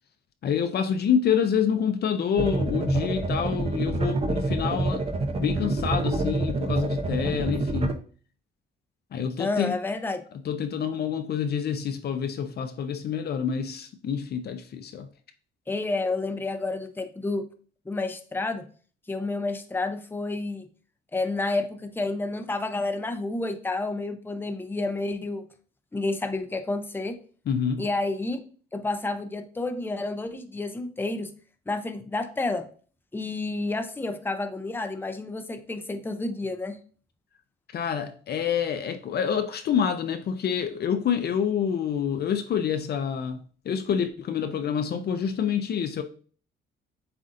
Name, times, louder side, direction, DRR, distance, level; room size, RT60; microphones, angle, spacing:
voice 1, 0.4-5.0 5.4-8.0 9.1-9.8 10.4-15.1 27.5-27.8 37.7-43.4 43.7-46.0, left 7 dB, 55° left, 0.5 m, -27 dB
sound 1, 2.4-7.9, right 2 dB, 30° right, 0.6 m, -27 dB
voice 2, 9.4-10.2 15.7-17.5 17.9-18.6 19.1-20.7 21.1-25.4 25.9-27.2 27.8-28.4 28.7-31.3 31.7-32.6 33.1-36.8, left 2 dB, 10° left, 0.6 m, -30 dB
7.5 x 2.6 x 2.5 m
cardioid pair, 90°, 20 cm